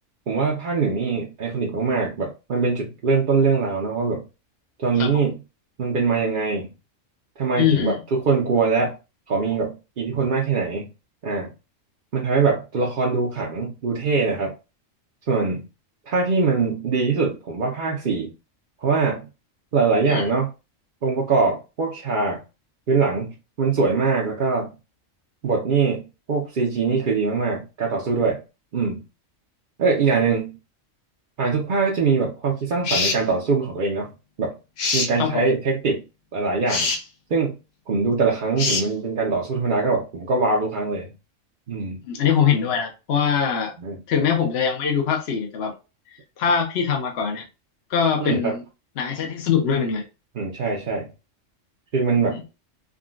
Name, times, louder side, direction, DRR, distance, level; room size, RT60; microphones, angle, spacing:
voice 1, 0.3-4.2 4.8-5.4 5.8-6.7 7.4-9.0 9.3-10.9 11.2-11.5 12.1-14.5 15.3-15.7 16.1-18.3 18.8-19.3 19.7-20.5 21.0-22.4 22.9-24.7 25.4-28.4 28.7-29.0 29.8-30.6 31.4-34.1 34.4-34.6 34.9-36.0 36.3-36.9 37.3-37.6 37.9-41.1 41.7-42.0 43.8-44.0 48.2-48.6 50.4-51.1 51.9-52.4, right 4 dB, 50° right, 0.7 m, -22 dB
voice 2, 7.6-8.0 20.1-20.3 35.2-35.5 42.1-43.7 44.1-45.7 46.4-47.5 47.9-48.6 49.0-50.1 52.3-52.4, left 7 dB, 60° left, 0.9 m, -22 dB
sound 1, 32.8-33.2 34.8-35.1 36.7-37.0 38.6-38.9, left 4 dB, 80° left, 1.1 m, -23 dB
3.7 x 2.3 x 2.4 m
omnidirectional pair, 1.3 m